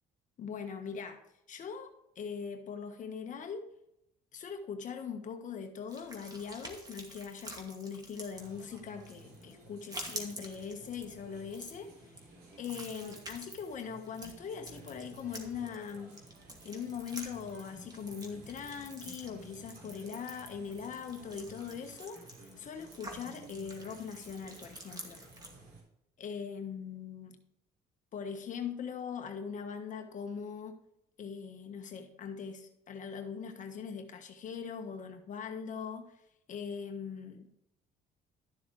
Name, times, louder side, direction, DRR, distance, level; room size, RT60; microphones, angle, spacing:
voice 1, 0.4-1.2 1.5-3.7 4.3-12.1 12.6-16.2 16.6-25.2 26.2-27.4 28.1-30.8 31.2-36.2 36.5-37.6, left 6 dB, 50° left, 1.4 m, -41 dB
sound 1, 5.9-25.5, right 1 dB, 25° right, 2.4 m, -48 dB
sound 2, 8.3-25.8, right 2 dB, 65° right, 4.3 m, -55 dB
12.5 x 7.1 x 3.3 m
cardioid pair, 110°, 17 cm